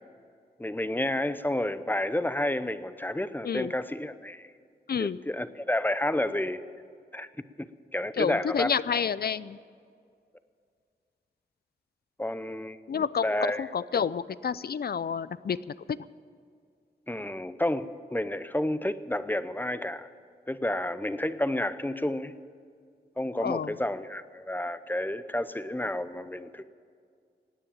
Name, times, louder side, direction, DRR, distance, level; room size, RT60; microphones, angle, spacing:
voice 1, 0.6-4.5 5.0-6.6 7.1-7.3 7.6-8.8 12.2-12.8 13.2-13.7 17.1-20.1 20.5-22.4 23.2-26.6, left 1 dB, 10° left, 13 dB, 0.7 m, -30 dB
voice 2, 4.9-5.2 8.2-9.6 12.9-13.3 13.6-15.6 23.4-23.7, left 7 dB, 60° left, 18 dB, 0.4 m, -29 dB
16.5 x 9.9 x 8.8 m, 2.2 s
wide cardioid pair, 70°, 18 cm